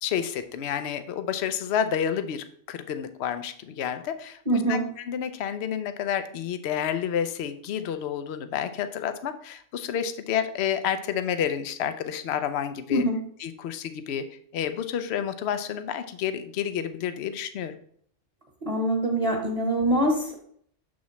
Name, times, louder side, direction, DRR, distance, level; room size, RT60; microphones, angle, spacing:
voice 1, 0.0-13.0 13.4-14.3 14.5-17.8, left 8 dB, 65° left, 10 dB, 0.9 m, -30 dB
voice 2, 4.4-4.9 12.9-13.3 18.6-20.4, right 1 dB, 30° right, 0 dB, 1.2 m, -24 dB
7.0 x 6.3 x 3.1 m, 0.62 s
omnidirectional pair, 1.3 m